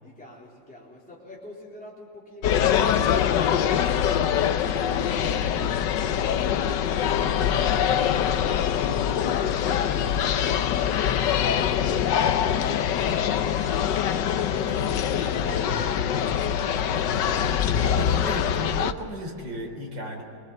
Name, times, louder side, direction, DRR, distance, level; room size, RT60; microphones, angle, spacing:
voice 1, 0.0-3.0 3.5-14.1 14.5-17.8, left 1 dB, 5° left, -5 dB, 3.9 m, -45 dB
sound 1, 2.4-18.9, left 9 dB, 75° left, 1.5 m, -24 dB
voice 2, 14.5-15.0 17.8-20.2, equal, 80° right, 1 dB, 4.5 m, -34 dB
25.5 x 22.5 x 7.6 m, 2.6 s
omnidirectional pair, 1.9 m